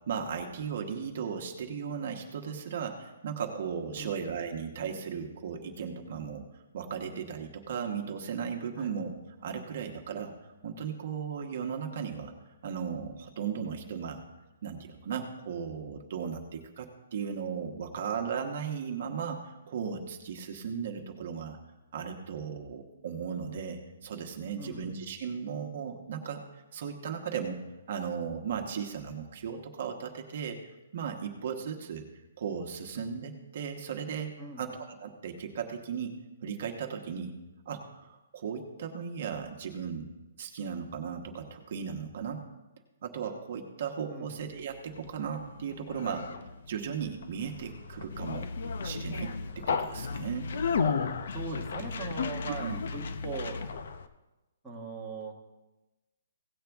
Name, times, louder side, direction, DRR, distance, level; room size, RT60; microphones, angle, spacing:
voice 1, 0.1-6.4 6.7-9.1 9.4-10.3 10.6-12.3 12.6-14.2 14.6-21.6 21.9-27.6 27.9-32.0 32.4-37.3 37.6-40.1 40.4-42.4 43.0-46.3 46.7-48.5 48.8-50.5 52.6-52.8, right 7 dB, 45° right, 3 dB, 1.2 m, -36 dB
voice 2, 24.6-24.9 34.4-34.7 44.1-44.3 51.3-53.6 54.6-55.3, right 3 dB, ahead, -6 dB, 1.3 m, -40 dB
Conversation, 44.6-54.1, left 5 dB, 55° left, 0.7 m, -34 dB
17.0 x 7.5 x 3.5 m, 1.0 s
hypercardioid pair, 175°, 0 cm